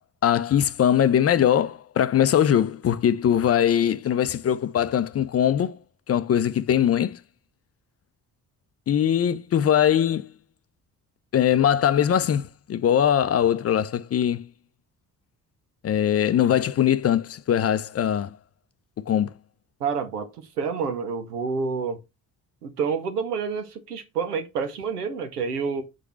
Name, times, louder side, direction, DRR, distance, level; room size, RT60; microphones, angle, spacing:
voice 1, 0.2-5.8 6.1-7.2 8.9-10.3 11.3-14.4 15.8-18.4 19.0-19.3, left 9 dB, 35° left, 0.5 m, -21 dB
voice 2, 19.8-20.3 20.6-22.0 22.6-25.8, right 5 dB, 85° right, 0.9 m, -28 dB
6.0 x 5.0 x 4.4 m
figure-of-eight pair, 45°, 45 cm